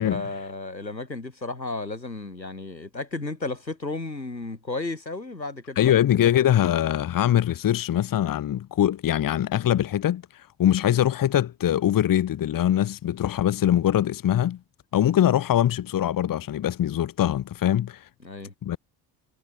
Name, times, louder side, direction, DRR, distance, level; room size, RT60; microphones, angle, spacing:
voice 1, 0.0-6.4 18.2-18.5, left 2 dB, 90° left, 6.6 m, -33 dB
voice 2, 5.8-14.6 14.9-18.1 18.6-18.8, left 11 dB, 40° left, 1.7 m, -22 dB
figure-of-eight pair, 50°, 50 cm